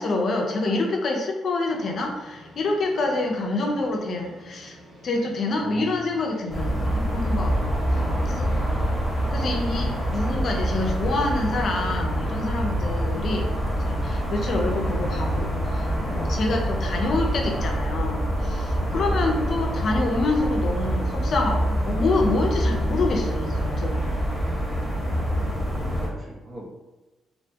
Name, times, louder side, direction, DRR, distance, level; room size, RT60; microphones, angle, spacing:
voice 1, 0.0-4.8 5.0-7.6 8.3-8.5 9.3-24.1, left 2 dB, 60° left, 1 dB, 0.4 m, -27 dB
sound 1, 1.6-11.2, equal, 80° right, 1.1 m, -48 dB
voice 2, 5.6-6.1 8.0-8.8 12.9-13.3 18.9-19.3 25.2-26.7, equal, 30° right, -3 dB, 0.8 m, -43 dB
sound 2, 6.5-26.1, equal, 10° right, 1.1 m, -25 dB
2.8 x 2.1 x 2.7 m, 1.1 s
supercardioid pair, 65°, 0 cm